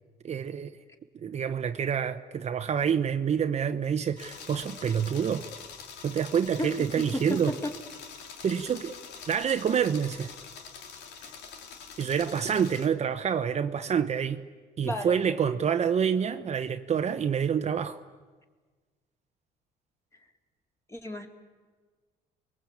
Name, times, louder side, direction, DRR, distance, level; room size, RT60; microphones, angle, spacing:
voice 1, 0.2-0.7 1.2-5.5 6.0-7.5 8.4-8.9 9.3-10.3 12.0-14.4 14.8-18.0, right 7 dB, 40° right, 1.0 m, -27 dB
sound 1, 4.2-12.9, left 6 dB, 85° left, 2.8 m, -45 dB
voice 2, 6.6-7.7 14.8-15.2 20.9-21.3, left 1 dB, 15° left, 3.4 m, -33 dB
29.5 x 21.5 x 8.6 m
cardioid pair, 110°, 17 cm